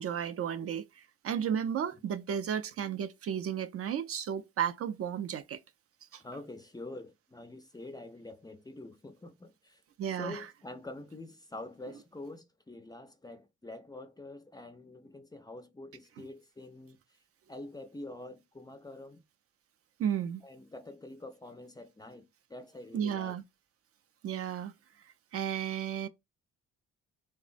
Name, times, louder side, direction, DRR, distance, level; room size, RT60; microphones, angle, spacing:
voice 1, 0.0-5.6 6.1-6.2 10.0-10.5 16.2-16.3 20.0-20.4 22.9-23.4 24.2-24.7 25.3-26.1, right 9 dB, 50° right, 0.4 m, -33 dB
voice 2, 6.2-9.8 10.2-17.0 17.5-19.2 20.4-23.4, left 2 dB, 15° left, 0.4 m, -46 dB
3.2 x 2.0 x 2.4 m
cardioid pair, 90°, 30 cm